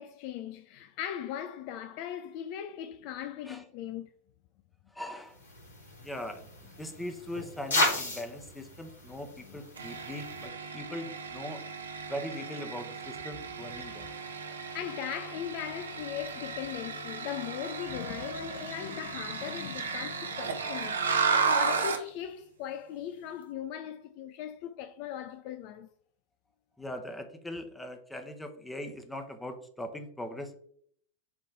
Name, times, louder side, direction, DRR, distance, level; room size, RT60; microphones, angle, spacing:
voice 1, 0.0-4.1 9.5-9.6 14.5-25.9, left 10 dB, 45° left, 0.4 m, -39 dB
voice 2, 4.9-5.4 6.0-6.5 6.8-11.6 12.1-14.1 26.8-30.5, left 1 dB, 5° left, 0.9 m, -40 dB
sound 1, 5.4-10.5, left 2 dB, 75° left, 2.1 m, -34 dB
sound 2, 9.8-22.1, right 5 dB, 70° right, 0.9 m, -34 dB
7.1 x 3.1 x 4.8 m
figure-of-eight pair, 90°, 0 cm